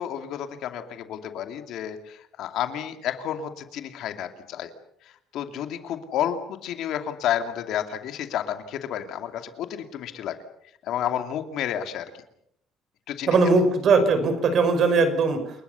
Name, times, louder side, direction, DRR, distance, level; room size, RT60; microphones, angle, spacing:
voice 1, 0.0-4.7 5.3-10.4 10.8-12.1 13.1-13.6, left 10 dB, 60° left, 7 dB, 2.5 m, -31 dB
voice 2, 13.3-15.4, right 4 dB, 40° right, 8 dB, 5.6 m, -20 dB
29.5 x 20.5 x 7.0 m, 0.74 s
cardioid pair, 155°, 0 cm